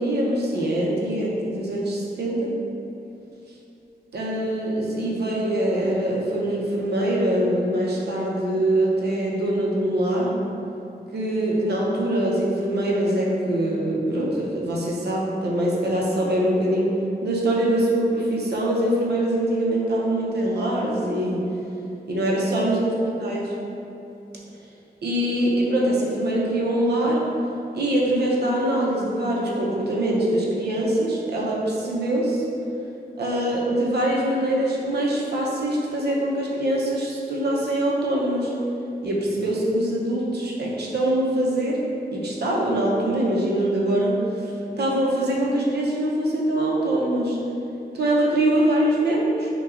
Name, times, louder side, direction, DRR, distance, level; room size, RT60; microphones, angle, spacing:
voice 1, 0.0-2.5 4.1-10.3 11.1-21.5 22.1-22.8 23.0-23.6 25.0-27.3 27.7-32.4 33.2-38.5 39.0-44.2 44.8-47.4 47.9-49.5, right 1 dB, 80° right, -3 dB, 0.7 m, -23 dB
5.7 x 2.2 x 2.5 m, 2.8 s
wide cardioid pair, 150°, 17 cm